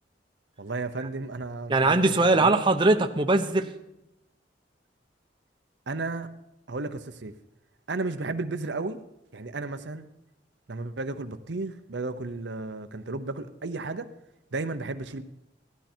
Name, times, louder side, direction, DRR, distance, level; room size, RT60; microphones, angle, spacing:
voice 1, 0.6-2.6 5.9-6.3 6.7-7.3 7.9-9.0 9.3-10.1 10.7-14.1 14.5-15.2, right 3 dB, 75° right, 8 dB, 0.8 m, -33 dB
voice 2, 1.7-3.7, right 2 dB, 25° right, 5 dB, 0.8 m, -21 dB
16.5 x 12.5 x 4.5 m, 0.87 s
head